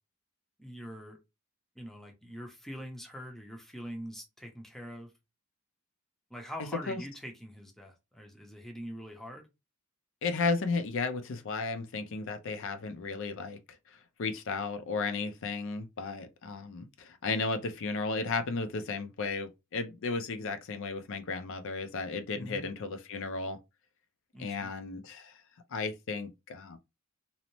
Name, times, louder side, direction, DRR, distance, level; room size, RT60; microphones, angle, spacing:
voice 1, 0.6-1.2 1.8-5.1 6.3-9.5 22.3-22.7 24.3-24.7, equal, ahead, 0.5 m, -43 dB
voice 2, 10.2-13.6 13.9-23.6 24.4-25.4 25.7-26.8, left 4 dB, 65° left, 0.5 m, -34 dB
2.6 x 2.0 x 2.9 m
head